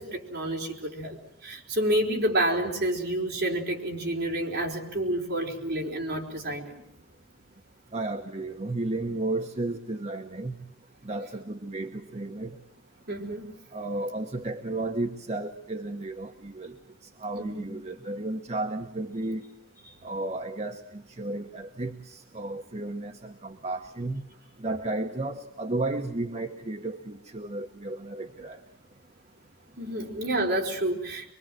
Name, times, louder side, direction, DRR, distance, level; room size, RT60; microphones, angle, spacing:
voice 1, 0.0-6.8 13.1-13.5 17.4-17.7 29.8-31.3, right 1 dB, 50° right, 0 dB, 4.5 m, -29 dB
voice 2, 7.9-10.6 11.0-12.6 13.7-16.8 17.2-19.4 20.0-24.2 24.6-28.6, right 2 dB, 30° right, 5 dB, 1.0 m, -33 dB
24.0 x 23.5 x 7.6 m, 0.85 s
head